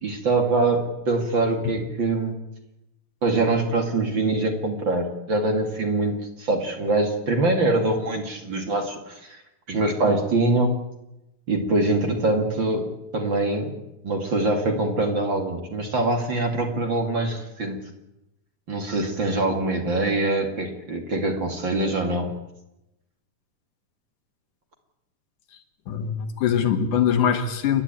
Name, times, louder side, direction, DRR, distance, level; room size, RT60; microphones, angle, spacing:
voice 1, 0.0-2.4 3.2-9.4 9.7-10.8 11.5-12.9 13.1-13.8 14.0-17.9 18.7-22.3, right 2 dB, 40° right, 4 dB, 2.7 m, -24 dB
voice 2, 25.9-27.8, left 8 dB, 70° left, 7 dB, 3.1 m, -23 dB
30.0 x 11.5 x 8.9 m, 0.92 s
omnidirectional pair, 3.7 m